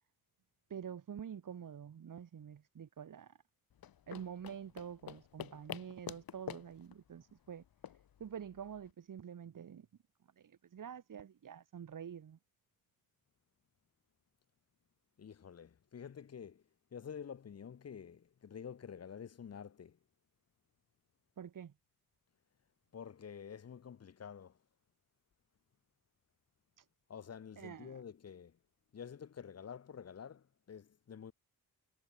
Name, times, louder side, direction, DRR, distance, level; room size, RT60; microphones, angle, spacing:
voice 1, 0.7-3.4 4.1-7.6 8.2-9.9 10.4-12.4 21.4-21.7 26.8-26.9 27.6-28.0, right 8 dB, 55° right, 2.3 m, -47 dB
sound 1, 3.7-8.9, left 10 dB, 70° left, 1.6 m, -49 dB
voice 2, 15.2-20.0 22.9-24.6 27.1-28.6 28.9-31.3, left 7 dB, 40° left, 1.0 m, -49 dB
cardioid pair, 105°, 37 cm